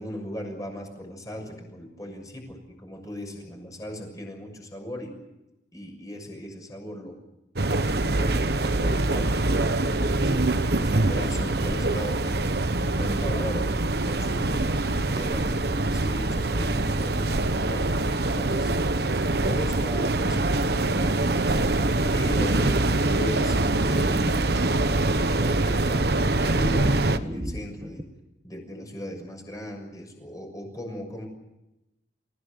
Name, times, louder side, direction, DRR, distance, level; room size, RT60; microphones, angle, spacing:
voice 1, 0.0-5.1 5.7-7.2 8.0-12.4 12.8-14.6 14.9-23.6 23.9-28.1 28.4-31.3, equal, 20° left, 3 dB, 6.6 m, -38 dB
sound 1, 7.6-27.2, right 2 dB, 60° right, 1.2 m, -24 dB
sound 2, 21.8-23.0 23.8-25.4 25.9-28.0, equal, 20° right, 1.5 m, -35 dB
29.5 x 16.5 x 8.4 m, 0.94 s
head